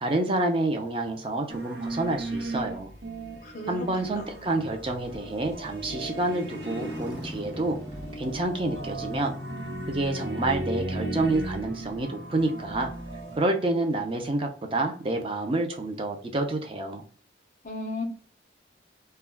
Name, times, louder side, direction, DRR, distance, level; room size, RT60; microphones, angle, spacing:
voice 1, 0.0-2.9 3.7-7.8 8.2-9.4 9.9-12.9 13.4-17.0, right 2 dB, 30° right, 3 dB, 0.4 m, -28 dB
sound 1, 1.5-13.4, right 1 dB, 60° right, 0.8 m, -36 dB
voice 2, 3.4-3.9 4.2-4.3 17.6-18.0, left 2 dB, 40° left, 1 dB, 0.5 m, -34 dB
Motorcycle, 3.6-12.8, equal, 80° right, 1.0 m, -45 dB
2.2 x 2.2 x 3.3 m, 0.43 s
head